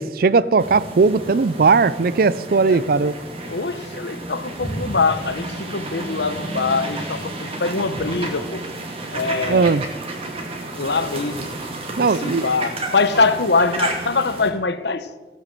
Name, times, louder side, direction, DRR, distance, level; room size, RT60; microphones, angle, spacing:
voice 1, 0.0-3.2 9.5-9.8 12.0-12.5, right 4 dB, 55° right, 0.4 m, -18 dB
sound 1, 0.6-14.5, right 2 dB, 35° right, 2.3 m, -31 dB
voice 2, 3.5-8.6 9.1-9.8 10.8-11.5 11.9-15.1, left 4 dB, 70° left, 0.9 m, -23 dB
15.5 x 9.0 x 7.6 m
head